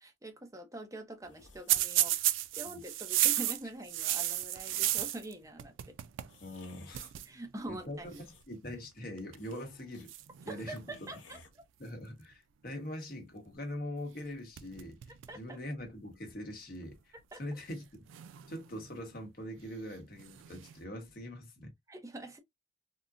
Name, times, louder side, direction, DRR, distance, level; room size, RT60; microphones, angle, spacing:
voice 1, 0.0-6.0 7.2-8.1 10.5-11.4 15.3-15.6 17.3-17.4 21.9-22.4, right 1 dB, 15° right, 0.6 m, -45 dB
sound 1, 1.2-1.9 2.6-3.7 4.3-4.4 4.6-5.4 6.3-7.1 7.8-8.7 9.0-9.1 9.4-10.1 10.4-10.5 10.8-11.5, left 4 dB, 80° left, 1.0 m, -58 dB
sound 2, 1.7-5.3 5.6-6.4 6.6-6.7 6.9-7.3 8.1-8.4 9.2-9.5 10.1-11.1 14.1-14.2 14.6-15.4 15.8-15.9 16.8-16.9 18.1-18.9 20.2-20.8, right 13 dB, 80° right, 0.3 m, -33 dB
voice 2, 6.4-7.1 7.7-10.1 10.5-11.1 11.8-15.0 15.3-16.9 17.4-18.1 18.5-21.7, left 1 dB, 45° left, 0.9 m, -42 dB
3.7 x 2.0 x 2.3 m
head